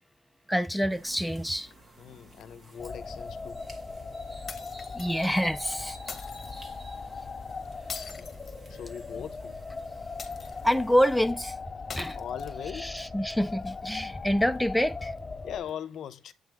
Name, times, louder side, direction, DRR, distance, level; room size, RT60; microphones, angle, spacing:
voice 1, 0.5-1.7 4.9-6.0 10.6-11.6 11.9-12.2 12.8-15.1, equal, ahead, 0.4 m, -26 dB
sound 1, 0.9-11.2, right 2 dB, 35° right, 1.9 m, -52 dB
voice 2, 2.0-3.7 8.2-8.3 8.7-9.6 11.9-13.0 15.4-16.3, left 9 dB, 70° left, 0.7 m, -40 dB
sound 2, 2.8-15.6, left 4 dB, 20° left, 2.1 m, -39 dB
sound 3, 4.5-5.3 6.1-6.7 7.9-9.1 10.2-10.8 11.9-12.8, left 5 dB, 40° left, 1.2 m, -42 dB
8.1 x 3.4 x 4.6 m
cardioid pair, 90°, 0 cm